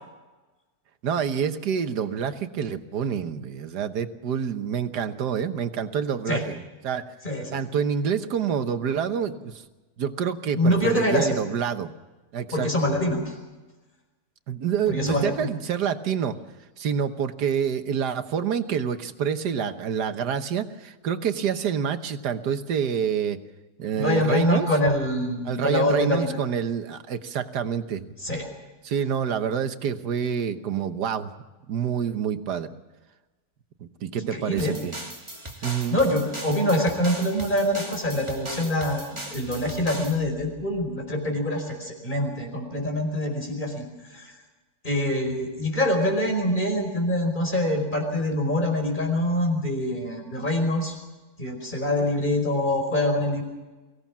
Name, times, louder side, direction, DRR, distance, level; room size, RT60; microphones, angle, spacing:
voice 1, 1.0-7.1 7.5-9.6 10.0-11.9 12.3-12.9 14.5-16.4 16.8-23.4 23.8-24.8 25.4-28.1 28.8-31.3 31.7-32.7 33.8-35.0 35.6-36.0, right 7 dB, 90° right, 9 dB, 1.7 m, -27 dB
voice 2, 7.2-7.6 10.5-11.4 12.5-13.3 14.9-15.5 24.0-26.4 28.2-28.5 34.3-34.7 35.9-43.9 44.1-44.3 44.8-50.9 51.4-53.4, left 1 dB, 30° left, 3 dB, 5.2 m, -25 dB
sound 1, 34.6-40.2, right 1 dB, 15° right, 2.3 m, -38 dB
23.5 x 17.0 x 7.4 m, 1.2 s
omnidirectional pair, 1.7 m